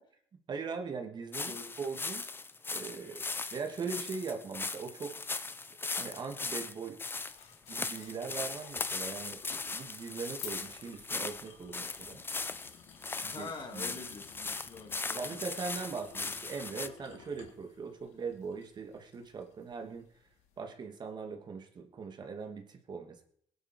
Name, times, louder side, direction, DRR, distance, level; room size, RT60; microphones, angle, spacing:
voice 1, 0.5-2.2 2.7-3.2 3.5-5.2 6.0-7.0 7.7-9.4 9.7-12.2 13.2-13.9 15.1-20.1 20.6-23.2, right 5 dB, 40° right, 4 dB, 2.7 m, -40 dB
sound 1, 1.3-16.9, left 3 dB, 20° left, 0.9 m, -39 dB
sound 2, 7.2-20.6, left 8 dB, 85° left, 3.2 m, -54 dB
voice 2, 13.1-15.5, left 4 dB, 40° left, 4 dB, 3.2 m, -45 dB
20.5 x 11.0 x 4.8 m, 0.63 s
cardioid pair, 120°, 11 cm